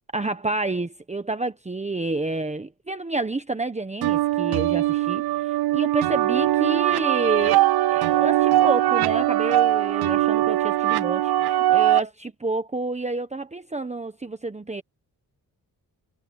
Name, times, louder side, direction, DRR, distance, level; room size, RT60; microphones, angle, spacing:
voice 1, 0.1-7.7 7.9-14.8, right 2 dB, 20° right, 1.2 m, -29 dB
sound 1, 4.0-12.0, right 14 dB, 90° right, 0.5 m, -21 dB
wide cardioid pair, 110°, 37 cm